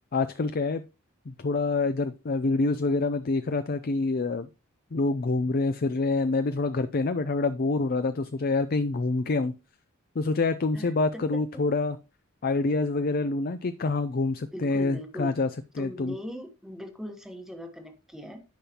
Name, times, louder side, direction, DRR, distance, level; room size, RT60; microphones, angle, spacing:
voice 1, 0.1-0.8 1.3-4.5 4.9-9.5 10.2-12.0 12.4-15.5 15.8-16.1, left 3 dB, 45° left, 11 dB, 0.5 m, -26 dB
voice 2, 14.5-15.3 15.8-18.4, equal, ahead, 4 dB, 1.1 m, -40 dB
10.0 x 5.5 x 2.9 m, 0.28 s
head